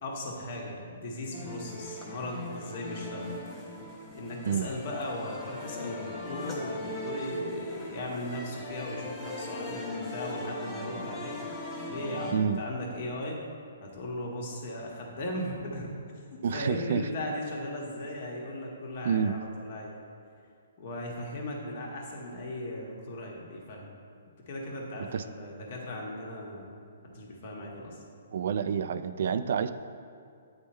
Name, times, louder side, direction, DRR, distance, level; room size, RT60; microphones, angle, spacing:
voice 1, 0.0-3.3 4.1-11.4 11.9-13.4 13.8-15.9 16.3-19.9 20.8-23.9 24.5-26.7 27.0-28.0, left 1 dB, 50° left, -1 dB, 1.4 m, -37 dB
sound 1, 1.3-12.3, left 2 dB, 20° left, 1.2 m, -39 dB
voice 2, 16.4-17.0 19.0-19.3 25.1-25.2 28.3-29.7, right 7 dB, 60° right, 11 dB, 0.3 m, -28 dB
8.8 x 3.6 x 4.3 m, 2.4 s
hypercardioid pair, 145°, 0 cm